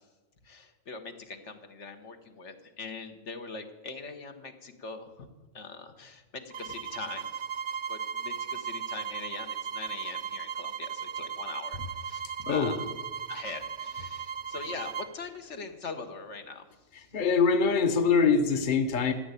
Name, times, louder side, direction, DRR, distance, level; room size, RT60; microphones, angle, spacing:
voice 1, 0.4-5.3 5.5-7.3 7.9-12.9 13.3-16.7 16.9-17.1, left 4 dB, 70° left, 6 dB, 1.5 m, -42 dB
sound 1, 6.5-15.1, right 7 dB, 50° right, 0.7 m, -37 dB
voice 2, 12.5-12.8 17.1-19.1, left 5 dB, 45° left, 7 dB, 1.1 m, -23 dB
14.0 x 8.9 x 8.3 m, 1.2 s
omnidirectional pair, 1.2 m